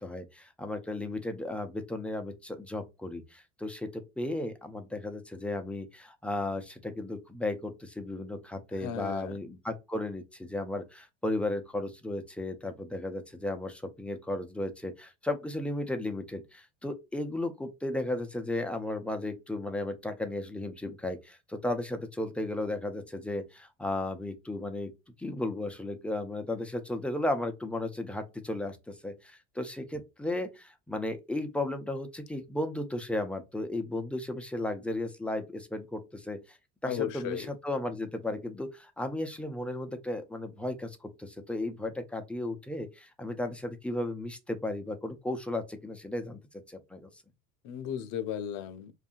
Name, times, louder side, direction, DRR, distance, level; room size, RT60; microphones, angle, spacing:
voice 1, 0.0-24.9 25.2-36.6 36.8-46.4 46.7-47.1, left 1 dB, 5° left, 0.3 m, -35 dB
voice 2, 8.8-9.3 36.9-37.5 47.6-48.9, left 10 dB, 50° left, 0.5 m, -35 dB
2.6 x 2.3 x 2.4 m
hypercardioid pair, 75°, 39 cm